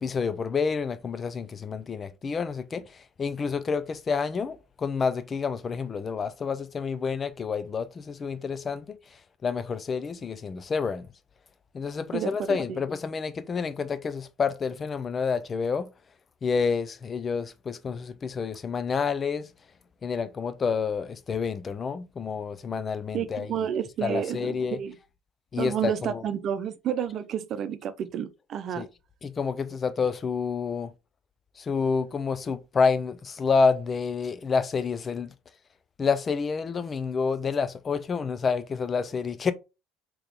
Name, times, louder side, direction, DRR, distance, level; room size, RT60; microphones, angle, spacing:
voice 1, 0.0-9.0 9.4-11.1 11.7-15.9 16.4-19.5 20.0-23.5 24.0-24.8 25.5-26.2 28.8-28.9 29.2-30.9 31.6-35.3 36.0-39.5, left 5 dB, 35° left, 0.5 m, -28 dB
voice 2, 12.1-12.8 23.1-25.0 25.6-28.8, right 9 dB, 55° right, 0.7 m, -30 dB
3.5 x 3.0 x 3.4 m
supercardioid pair, 80°, 0 cm